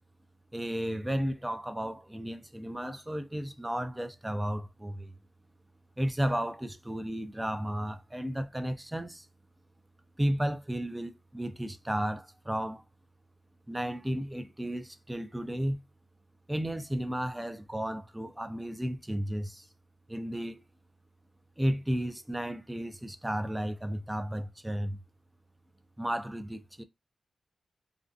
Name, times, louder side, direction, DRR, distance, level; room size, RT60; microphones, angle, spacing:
voice 1, 0.5-5.1 6.0-9.3 10.2-12.8 13.7-15.8 16.5-19.7 20.1-20.6 21.6-25.0 26.0-26.8, equal, 10° right, 0.4 m, -33 dB
2.6 x 2.2 x 2.4 m
cardioid pair, 65°, 0 cm